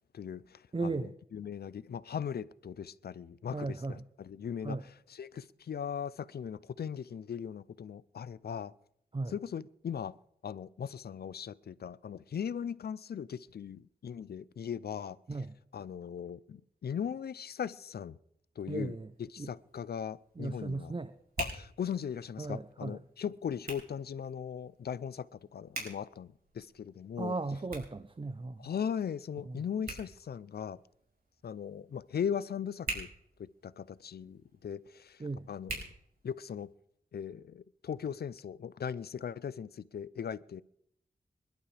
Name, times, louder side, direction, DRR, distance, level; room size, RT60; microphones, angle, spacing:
voice 1, 0.1-8.7 9.3-10.2 10.4-15.2 15.7-18.2 18.6-20.9 21.4-26.3 26.5-27.3 28.6-30.8 31.4-33.1 33.4-35.9 36.2-36.7 37.1-40.6, left 8 dB, 80° left, 0.5 m, -39 dB
voice 2, 0.7-1.1 3.5-4.0 4.6-4.8 9.1-9.3 15.3-15.6 18.7-19.1 19.4-19.5 20.4-21.1 22.4-23.0 27.2-28.7 29.5-29.6 35.2-35.5, right 3 dB, 35° right, 0.7 m, -36 dB
Hands, 19.1-36.8, right 2 dB, 70° right, 5.3 m, -47 dB
26.0 x 11.5 x 3.4 m
cardioid pair, 60°, 16 cm